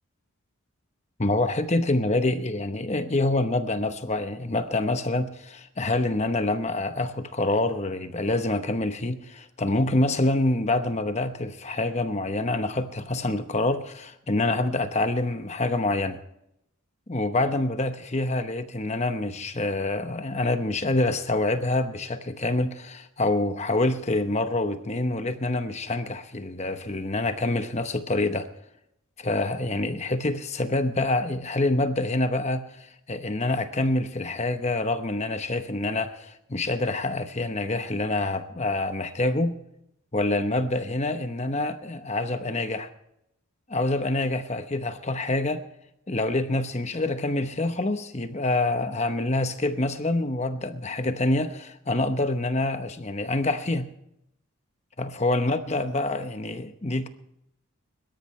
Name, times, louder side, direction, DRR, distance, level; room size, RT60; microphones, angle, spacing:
voice 1, 1.2-16.2 17.1-28.5 29.2-39.5 40.1-42.9 43.7-45.6 46.1-53.9 55.0-57.1, left 2 dB, 30° left, 9 dB, 0.9 m, -26 dB
23.0 x 13.0 x 3.2 m, 0.78 s
head